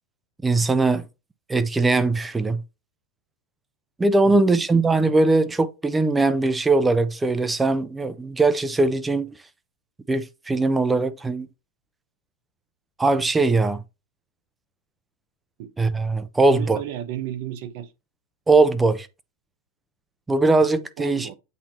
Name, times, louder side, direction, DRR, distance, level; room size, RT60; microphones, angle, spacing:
voice 1, 0.4-1.0 1.5-2.6 4.0-9.3 10.1-11.5 13.0-13.8 15.8-16.8 18.5-19.1 20.3-21.3, right 3 dB, 10° right, 0.6 m, -20 dB
voice 2, 4.2-4.7 15.6-15.7 16.5-17.9 21.0-21.4, right 11 dB, 65° right, 0.8 m, -33 dB
8.3 x 2.9 x 4.4 m
hypercardioid pair, 115°, 0 cm